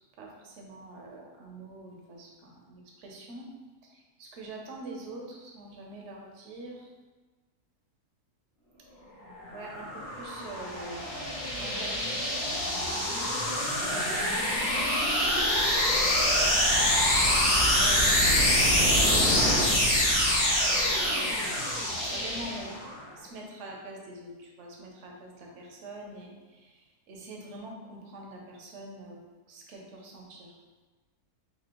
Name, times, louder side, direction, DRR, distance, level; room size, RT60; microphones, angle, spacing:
voice 1, 0.0-3.5 4.2-6.8 9.5-11.1 11.6-12.2 13.8-14.5 15.8-19.6 20.6-21.3 21.9-22.8 23.2-26.3 27.1-29.2 29.5-30.5, right 2 dB, 60° right, -1 dB, 0.9 m, -44 dB
sound 1, 9.5-22.9, left 1 dB, 50° left, 1.4 m, -25 dB
4.2 x 2.8 x 2.9 m, 1.3 s
omnidirectional pair, 1.7 m